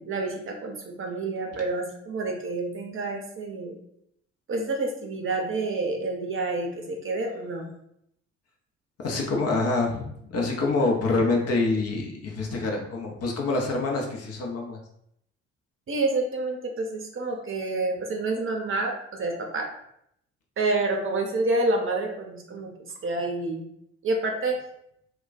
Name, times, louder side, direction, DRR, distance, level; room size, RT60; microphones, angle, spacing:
voice 1, 0.0-3.8 4.5-7.7 15.9-19.7 20.6-22.7 23.0-23.6 24.0-24.6, right 2 dB, 35° right, 1 dB, 0.7 m, -28 dB
voice 2, 9.0-14.8, left 3 dB, 40° left, 0 dB, 0.8 m, -26 dB
2.3 x 2.3 x 3.9 m, 0.73 s
figure-of-eight pair, 45°, 37 cm